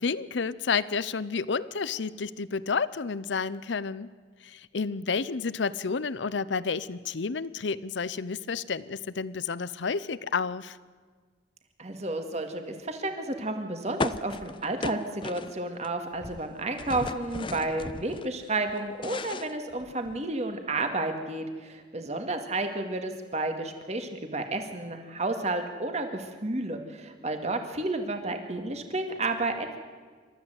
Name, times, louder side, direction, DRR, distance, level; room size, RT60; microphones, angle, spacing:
voice 1, 0.0-4.1 4.4-10.8, left 5 dB, 75° left, 17 dB, 0.7 m, -30 dB
voice 2, 11.8-29.8, right 2 dB, 35° right, 6 dB, 2.0 m, -31 dB
sound 1, 14.0-15.9 16.1-18.3 18.7-20.2, left 3 dB, 25° left, 0.5 m, -36 dB
27.5 x 13.5 x 8.0 m, 1.6 s
head